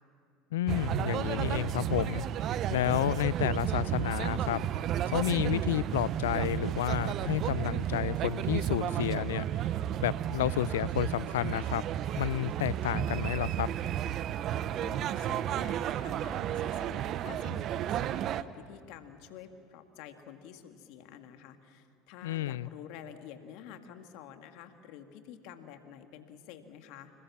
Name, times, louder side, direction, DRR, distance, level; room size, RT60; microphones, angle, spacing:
voice 1, 0.5-2.3 2.7-4.7 5.0-9.4 10.0-11.8 12.2-13.7 22.2-22.7, left 14 dB, 80° left, 21 dB, 0.5 m, -31 dB
sound 1, 0.7-18.4, right 11 dB, 50° right, 0.8 m, -32 dB
voice 2, 14.8-27.1, left 9 dB, 65° left, 7 dB, 2.0 m, -49 dB
26.5 x 21.0 x 7.3 m, 2.7 s
hypercardioid pair, 80°, 0 cm